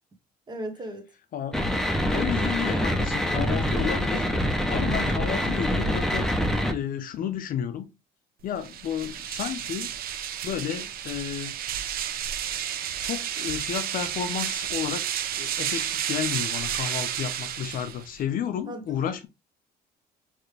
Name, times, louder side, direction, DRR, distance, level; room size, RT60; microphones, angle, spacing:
voice 1, 0.5-1.1 18.7-19.0, right 1 dB, 25° right, 1.5 m, -36 dB
sound 1, 1.5-6.7, equal, 5° left, 0.9 m, -25 dB
voice 2, 2.1-4.3 4.7-6.3 6.7-7.9 8.4-9.9 10.4-11.5 13.0-15.1 15.3-19.3, left 9 dB, 55° left, 0.6 m, -32 dB
sound 2, 8.5-18.2, right 10 dB, 60° right, 0.7 m, -31 dB
4.2 x 3.3 x 3.3 m
cardioid pair, 110°, 17 cm